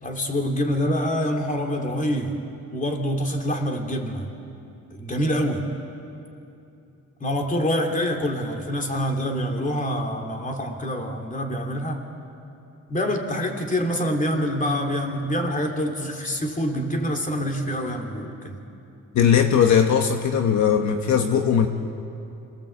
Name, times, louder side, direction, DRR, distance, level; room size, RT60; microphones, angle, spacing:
voice 1, 0.0-2.4 2.7-4.3 4.9-5.7 7.2-12.0 12.9-18.6, equal, 25° left, 3 dB, 3.2 m, -26 dB
voice 2, 19.1-21.7, left 8 dB, 70° left, 5 dB, 1.3 m, -19 dB
27.0 x 19.0 x 8.0 m, 2.8 s
cardioid pair, 90°, 30 cm